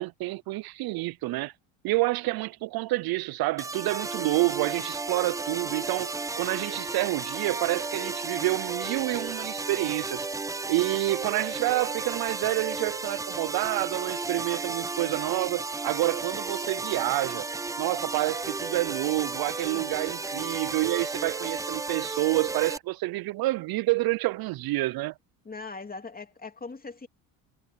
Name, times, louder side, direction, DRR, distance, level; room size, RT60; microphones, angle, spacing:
voice 1, 0.0-1.5 1.8-10.3 10.7-17.5 17.8-25.1, right 19 dB, 60° right, 0.6 m, -28 dB
sound 1, 3.6-22.8, right 3 dB, 10° right, 0.3 m, -34 dB
voice 2, 25.4-27.1, left 4 dB, 20° left, 2.6 m, -40 dB
supercardioid pair, 80°, 42 cm